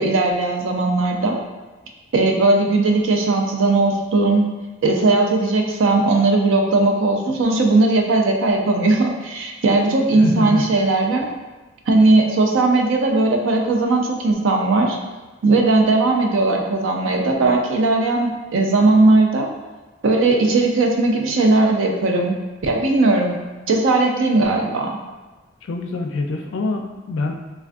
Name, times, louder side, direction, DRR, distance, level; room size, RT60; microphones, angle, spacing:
voice 1, 0.0-1.4 2.1-4.5 4.8-11.3 11.9-15.0 15.4-19.5 20.0-22.4 22.6-23.4 23.7-25.0, right 2 dB, 80° right, 2 dB, 0.4 m, -18 dB
voice 2, 10.1-10.6 25.7-27.5, left 3 dB, 75° left, 3 dB, 0.4 m, -25 dB
3.4 x 2.3 x 2.5 m, 1.2 s
head